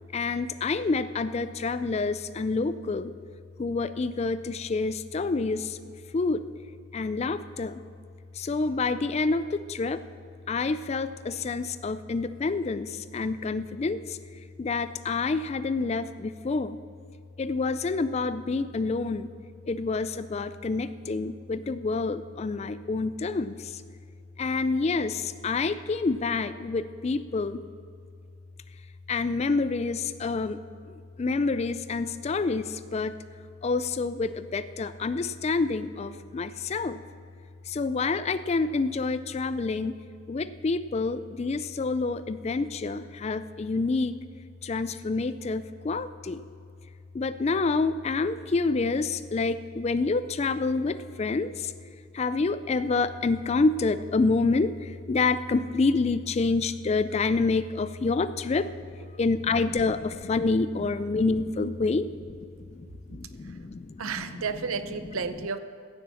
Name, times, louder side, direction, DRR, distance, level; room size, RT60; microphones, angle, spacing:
voice 1, 0.1-3.1 3.6-5.8 6.1-6.4 6.9-7.8 8.4-10.0 10.5-14.2 14.6-16.8 17.4-19.3 19.7-23.8 24.4-27.6 29.1-30.6 30.9-33.1 33.6-37.0 37.7-40.0 40.3-44.2 44.6-46.4 47.1-51.7 52.1-58.7 59.2-62.1 62.4-62.9 63.1-64.0, left 3 dB, 30° left, 14 dB, 0.3 m, -28 dB
voice 2, 64.0-65.6, right 5 dB, 75° right, 11 dB, 0.7 m, -32 dB
16.0 x 7.1 x 7.0 m, 2.4 s
head